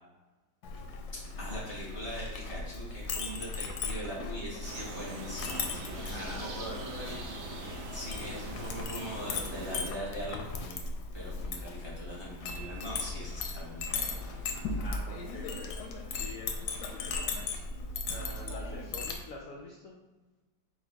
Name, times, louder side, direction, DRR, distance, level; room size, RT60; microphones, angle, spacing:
Chink clink, 0.6-19.2, left 4 dB, 70° left, 1.0 m, -38 dB
voice 1, 1.4-6.7 7.9-10.8 11.1-14.6, equal, 25° right, -6 dB, 0.6 m, -41 dB
sound 1, 4.6-9.9, right 2 dB, 60° right, 0.7 m, -42 dB
voice 2, 6.1-7.6 14.8-15.6 16.2-17.3 18.1-20.0, left 3 dB, 85° left, -1 dB, 0.7 m, -46 dB
4.6 x 2.3 x 4.5 m, 1.2 s
omnidirectional pair, 2.0 m